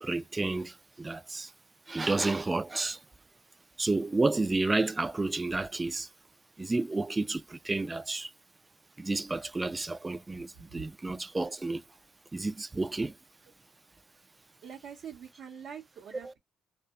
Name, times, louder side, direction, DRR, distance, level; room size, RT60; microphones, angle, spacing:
voice 1, 0.0-1.5 1.9-3.0 3.8-6.1 6.6-8.3 9.0-11.8 12.3-13.1 16.2-16.3, right 2 dB, 20° right, 0.4 m, -31 dB
voice 2, 14.6-16.4, right 7 dB, 70° right, 0.7 m, -44 dB
2.7 x 2.1 x 2.4 m
cardioid pair, 90°, 0 cm